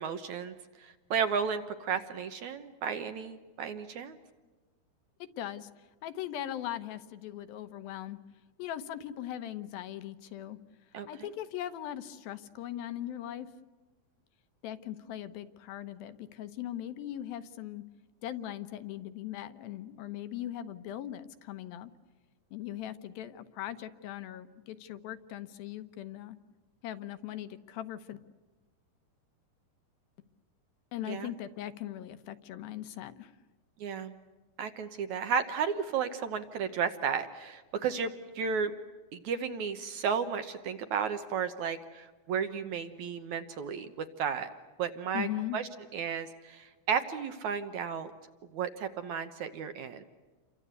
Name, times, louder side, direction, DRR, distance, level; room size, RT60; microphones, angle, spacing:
voice 1, 0.0-4.2 10.9-11.1 31.1-31.3 33.8-34.1 34.6-38.7 39.1-44.5 44.8-45.3 45.5-48.1 48.5-50.0, right 7 dB, 75° right, 9 dB, 1.7 m, -33 dB
voice 2, 5.2-8.2 8.6-10.6 11.1-13.5 14.6-17.8 18.2-21.9 22.5-26.4 26.8-28.2 30.9-33.3 45.1-45.6, left 12 dB, 70° left, 12 dB, 2.6 m, -39 dB
29.5 x 24.5 x 8.2 m, 1.3 s
omnidirectional pair, 4.9 m